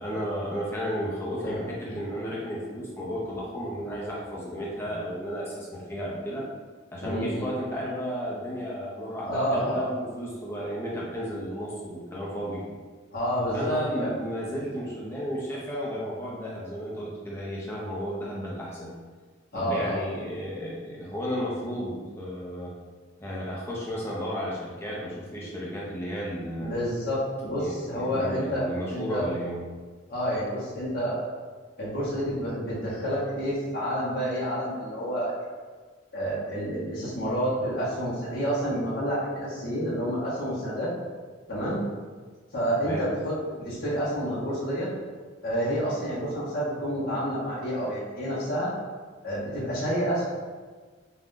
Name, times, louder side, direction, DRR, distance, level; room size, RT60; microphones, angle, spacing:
voice 1, 0.0-6.5 6.9-12.8 13.5-18.9 19.5-22.8 23.2-26.8 27.6-29.6 42.8-43.1, equal, 15° left, -5 dB, 0.6 m, -33 dB
voice 2, 1.4-2.0 7.0-7.5 9.2-9.8 13.1-14.1 19.5-20.0 26.6-29.3 30.1-31.2 31.8-35.3 36.1-40.9 41.5-41.8 42.5-44.9 45.4-48.7 49.2-50.3, equal, 50° left, -10 dB, 0.8 m, -29 dB
2.5 x 2.3 x 3.6 m, 1.5 s
head